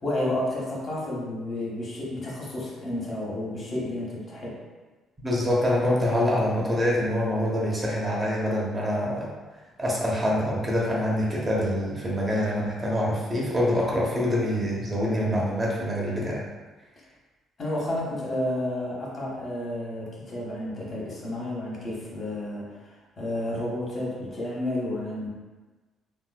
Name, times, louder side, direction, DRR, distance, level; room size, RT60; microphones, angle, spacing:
voice 1, 0.0-4.6 17.6-22.7 23.2-25.3, left 1 dB, 45° left, -5 dB, 1.1 m, -31 dB
voice 2, 5.2-9.3 9.8-16.4, equal, 25° right, -5 dB, 0.9 m, -25 dB
3.1 x 3.0 x 2.3 m, 1.3 s
figure-of-eight pair, 45°, 0 cm